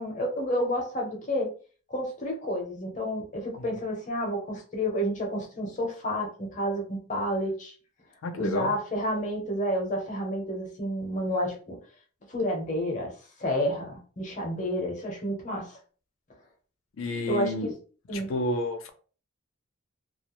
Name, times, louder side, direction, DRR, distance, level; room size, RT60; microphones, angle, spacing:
voice 1, 0.0-1.5 1.9-7.7 8.4-11.8 12.3-13.1 13.4-15.8 17.3-17.7 18.1-18.3, equal, 35° left, 1 dB, 0.6 m, -30 dB
voice 2, 8.2-8.7 17.0-17.7 18.1-18.9, left 2 dB, 75° left, 7 dB, 0.5 m, -30 dB
2.3 x 2.0 x 2.9 m, 0.40 s
head